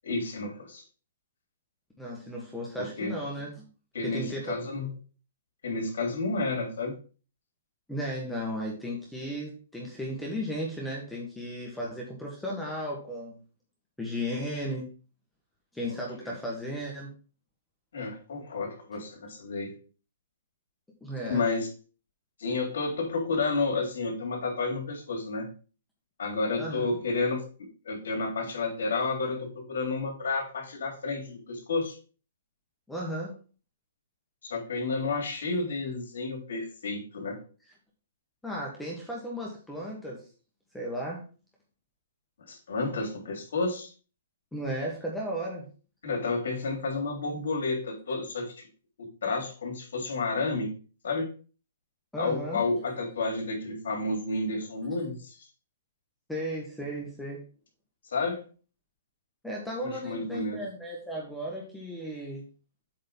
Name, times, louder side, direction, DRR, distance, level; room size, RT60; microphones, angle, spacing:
voice 1, 0.0-0.8 2.8-3.1 3.9-4.9 5.6-7.0 15.9-16.0 17.9-19.7 21.2-21.7 22.4-25.5 26.2-32.0 34.4-37.4 42.5-43.9 46.0-48.7 49.0-50.7 51.0-51.3 52.2-55.4 58.1-58.4 59.8-60.6, left 3 dB, 75° left, 1 dB, 3.3 m, -31 dB
voice 2, 2.0-3.7 4.0-4.6 7.9-13.4 14.0-14.9 15.7-17.1 21.0-21.5 26.6-26.9 32.9-33.3 38.4-40.3 40.7-41.2 44.5-45.7 52.1-52.6 56.3-57.4 59.4-62.4, equal, 5° left, -3 dB, 1.4 m, -35 dB
7.9 x 3.9 x 5.4 m, 0.37 s
hypercardioid pair, 160°, 0 cm